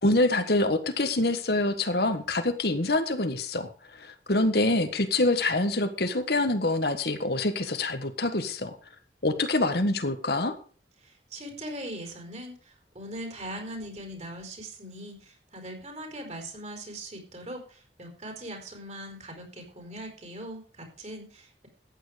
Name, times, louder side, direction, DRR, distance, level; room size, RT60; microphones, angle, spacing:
voice 1, 0.0-8.8 9.2-10.5, left 2 dB, 60° left, 8 dB, 1.6 m, -26 dB
voice 2, 11.0-21.7, right 1 dB, 40° right, 4 dB, 4.7 m, -40 dB
14.0 x 9.3 x 5.1 m, 0.41 s
head